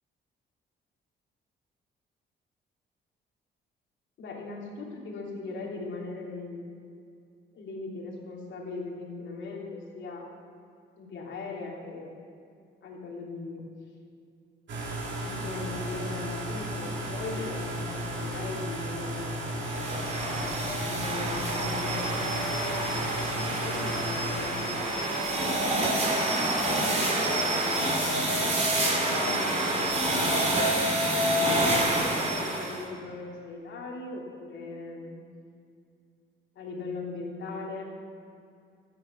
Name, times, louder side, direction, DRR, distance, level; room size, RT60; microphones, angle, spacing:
voice 1, 4.2-6.6 7.5-10.2 11.0-12.1 12.8-13.7 15.2-19.3 20.3-25.8 26.5-27.9 28.7-30.7 31.2-35.2 36.5-37.9, left 3 dB, 70° left, -2 dB, 3.1 m, -39 dB
sound 1, 14.7-24.5, right 1 dB, 65° right, 3.1 m, -34 dB
sound 2, 19.6-32.8, right 1 dB, 35° right, 2.9 m, -27 dB
13.0 x 9.3 x 7.3 m, 2.4 s
cardioid pair, 90°, 20 cm